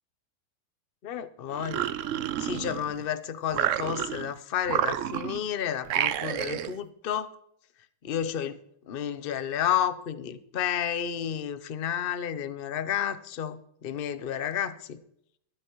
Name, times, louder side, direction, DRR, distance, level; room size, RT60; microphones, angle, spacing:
voice 1, 1.0-1.9 2.4-7.3 8.0-8.6 8.9-15.0, left 9 dB, 70° left, 12 dB, 0.5 m, -31 dB
sound 1, 1.5-3.1 3.5-4.3 4.7-5.5 5.9-6.8, right 11 dB, 85° right, 0.6 m, -30 dB
23.0 x 7.9 x 3.0 m, 0.72 s
omnidirectional pair, 2.0 m